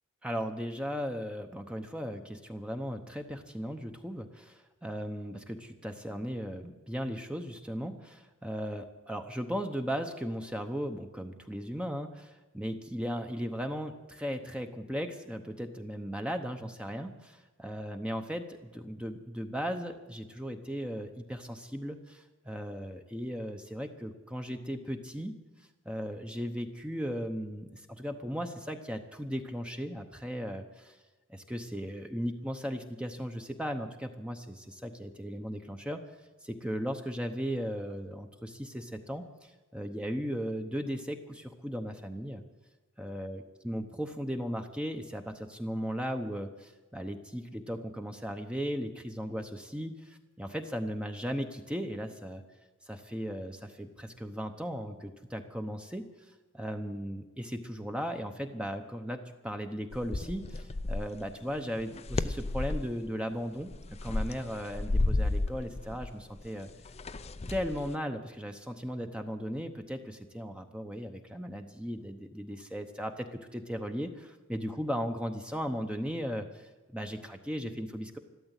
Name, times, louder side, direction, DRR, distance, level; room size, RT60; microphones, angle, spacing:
voice 1, 0.2-25.4 25.8-31.0 31.3-36.0 36.4-42.4 43.0-52.4 52.9-56.1 56.5-63.7 64.0-66.7 67.5-78.2, equal, 5° right, 5 dB, 0.8 m, -37 dB
sound 1, 59.9-61.2 61.8-62.9 63.6-67.9, left 2 dB, 30° left, 0.5 m, -32 dB
13.0 x 13.0 x 8.2 m, 1.2 s
head